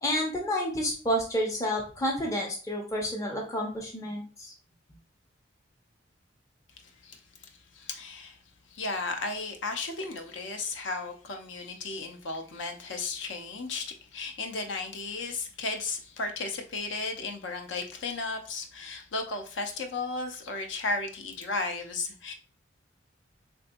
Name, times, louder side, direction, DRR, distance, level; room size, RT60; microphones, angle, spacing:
voice 1, 0.0-4.5, equal, 15° left, -1 dB, 0.5 m, -30 dB
voice 2, 7.7-8.4 8.7-13.9 14.1-22.3, left 3 dB, 70° left, 5 dB, 0.6 m, -34 dB
3.4 x 2.6 x 2.5 m, 0.37 s
head